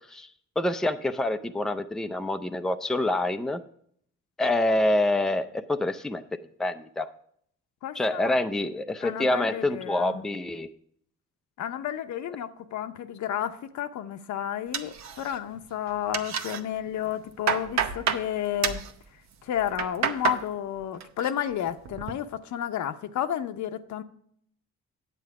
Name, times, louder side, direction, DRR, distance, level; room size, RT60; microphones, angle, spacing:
voice 1, 0.6-3.6 4.4-6.2 6.6-7.1 7.9-10.7, left 1 dB, ahead, 7 dB, 0.5 m, -26 dB
voice 2, 7.8-8.3 9.0-10.2 11.6-18.8 19.4-24.0, left 10 dB, 70° left, 9 dB, 0.8 m, -31 dB
sound 1, 14.7-15.6 15.9-16.6 17.0-18.3 18.6-18.9 19.5-20.4 20.8-21.3 21.7-22.1, right 7 dB, 65° right, 0.8 m, -29 dB
9.3 x 7.8 x 4.7 m, 0.65 s
cardioid pair, 90°, 30 cm